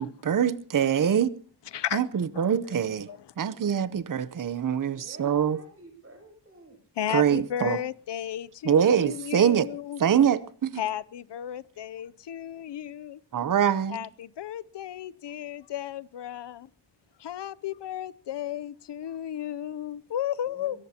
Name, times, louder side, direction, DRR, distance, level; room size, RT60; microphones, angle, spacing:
voice 1, 0.0-1.4 1.9-5.6 7.1-7.8 8.6-9.7 10.0-10.8 13.3-14.1, right 8 dB, 50° right, 0.8 m, -24 dB
voice 2, 5.0-6.8 20.5-20.8, right 2 dB, 35° right, 7.7 m, -50 dB
voice 3, 7.0-10.0 10.8-13.2 13.9-16.7 17.2-20.8, left 10 dB, 85° left, 0.7 m, -34 dB
23.0 x 18.0 x 2.9 m
wide cardioid pair, 140°, 41 cm